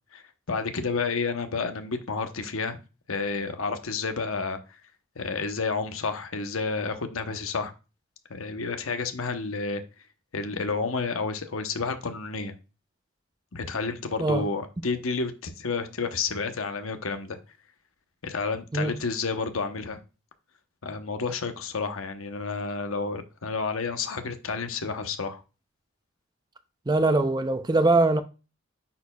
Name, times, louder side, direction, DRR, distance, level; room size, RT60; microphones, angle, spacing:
voice 1, 0.5-2.8 3.1-4.6 5.2-7.7 8.3-9.8 10.3-12.5 13.5-17.4 18.2-20.0 20.8-25.4, left 4 dB, 85° left, 0.9 m, -30 dB
voice 2, 26.9-28.2, right 2 dB, 20° right, 0.5 m, -22 dB
9.4 x 4.4 x 2.3 m
head